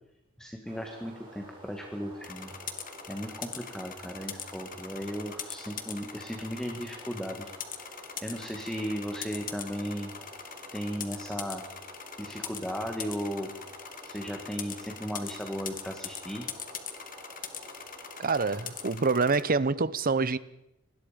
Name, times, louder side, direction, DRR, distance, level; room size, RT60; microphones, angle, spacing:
voice 1, 0.4-2.5 3.1-7.5 7.8-10.1 10.7-11.6 12.2-13.5 14.0-16.5, equal, 5° left, 1.9 m, -36 dB
sound 1, 0.7-18.9, right 2 dB, 25° right, 5.8 m, -50 dB
sound 2, 2.2-19.4, left 8 dB, 40° left, 2.1 m, -42 dB
voice 2, 18.2-20.4, right 4 dB, 40° right, 0.9 m, -26 dB
28.0 x 21.0 x 5.2 m
head